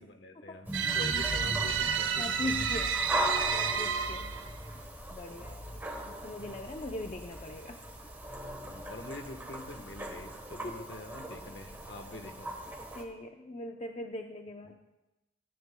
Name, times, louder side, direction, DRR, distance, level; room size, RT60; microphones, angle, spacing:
voice 1, 0.0-2.5 5.4-5.5 8.5-12.5, left 2 dB, 65° left, 6 dB, 1.2 m, -46 dB
sound 1, 0.6-13.0, right 1 dB, 10° right, 1.2 m, -39 dB
sound 2, 0.7-4.5, right 6 dB, 80° right, 0.7 m, -30 dB
voice 2, 2.2-3.0 3.5-4.4 5.1-7.8 10.5-10.9 12.9-14.8, left 1 dB, 35° left, 4 dB, 0.6 m, -40 dB
17.0 x 14.5 x 2.2 m, 1.0 s
head